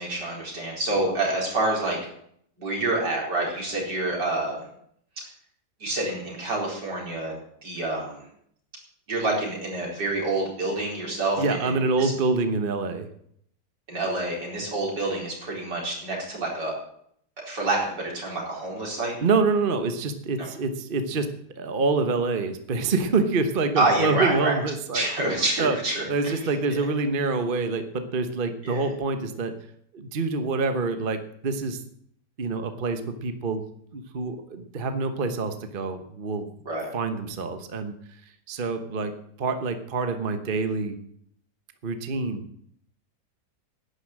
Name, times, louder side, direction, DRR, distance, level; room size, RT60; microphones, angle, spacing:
voice 1, 0.0-2.0 2.6-4.6 5.2-5.3 5.8-7.3 7.6-8.2 9.1-11.7 12.0-12.1 13.9-16.7 17.4-19.2 20.4-20.5 23.8-24.5 24.9-26.4 26.7-26.8 28.6-28.9 36.7-36.9, right 2 dB, 80° right, -2 dB, 5.1 m, -27 dB
voice 2, 11.4-13.1 19.2-25.1 25.6-25.8 26.1-29.6 29.9-31.8 32.4-33.6 33.9-36.5 36.9-37.9 38.5-39.1 39.4-41.0 41.8-42.4, right 4 dB, 35° right, 8 dB, 1.1 m, -26 dB
11.0 x 10.0 x 7.5 m, 0.68 s
omnidirectional pair, 1.9 m